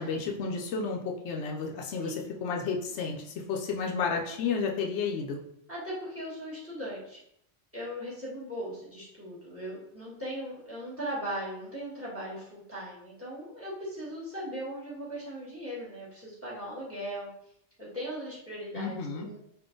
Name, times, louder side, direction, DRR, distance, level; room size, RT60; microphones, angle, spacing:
voice 1, 0.0-5.4 18.7-19.3, left 5 dB, 80° left, 0 dB, 0.9 m, -32 dB
voice 2, 5.7-7.2 7.7-17.3 17.8-19.4, equal, 10° right, -7 dB, 1.5 m, -38 dB
3.7 x 2.5 x 3.7 m, 0.73 s
omnidirectional pair, 1.2 m